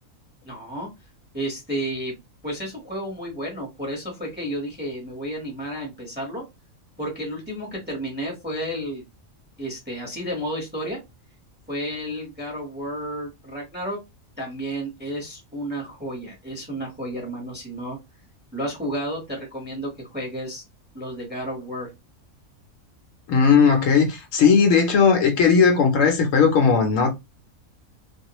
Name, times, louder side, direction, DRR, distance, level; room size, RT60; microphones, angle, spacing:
voice 1, 0.4-0.9 1.3-2.1 2.4-6.4 7.0-9.0 9.6-11.0 11.7-14.0 14.4-18.0 18.5-20.6 20.9-21.9, equal, 10° right, 0.8 m, -31 dB
voice 2, 23.3-27.1, left 6 dB, 70° left, 0.9 m, -17 dB
2.3 x 2.1 x 2.8 m
omnidirectional pair, 1.4 m